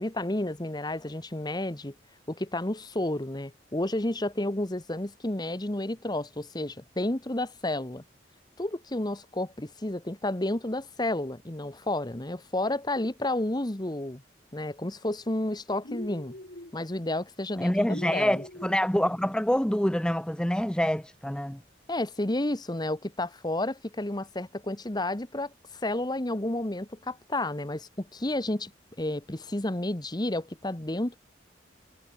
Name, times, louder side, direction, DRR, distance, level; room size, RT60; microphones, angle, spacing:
voice 1, 0.0-1.9 2.3-8.0 8.6-14.2 14.5-16.3 16.7-18.4 21.9-28.7 29.0-31.2, left 1 dB, 20° left, 1.2 m, -31 dB
sound 1, 15.8-16.7 17.9-18.8, left 1 dB, 55° left, 3.2 m, -42 dB
voice 2, 17.6-21.6, equal, 5° left, 0.7 m, -26 dB
head